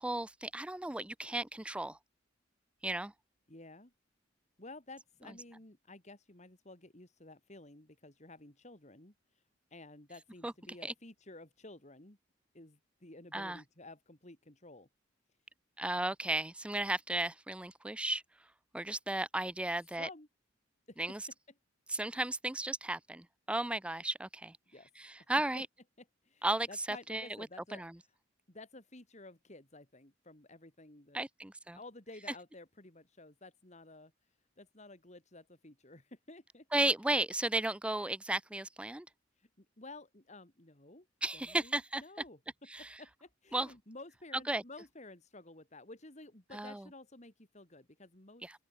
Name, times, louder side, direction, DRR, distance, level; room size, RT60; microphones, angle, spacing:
voice 1, 0.0-2.0 2.8-3.1 10.4-10.5 10.8-10.9 13.3-13.6 15.8-18.2 18.7-20.1 21.0-21.3 21.9-24.6 25.0-25.7 26.4-27.3 27.7-27.9 31.1-31.8 36.7-39.1 41.2-42.0 42.7-42.9 43.5-43.7 44.5-44.6 46.5-46.8 48.4-48.5, right 1 dB, 5° right, 0.4 m, -34 dB
voice 2, 3.5-3.9 4.6-9.1 9.7-12.2 12.5-14.9 20.0-20.3 20.9-21.0 24.7-24.9 26.0-27.8 28.5-31.2 31.7-34.1 34.6-36.7 39.4-41.1 41.3-42.4 42.8-48.4, left 2 dB, 35° left, 3.1 m, -53 dB
open air
head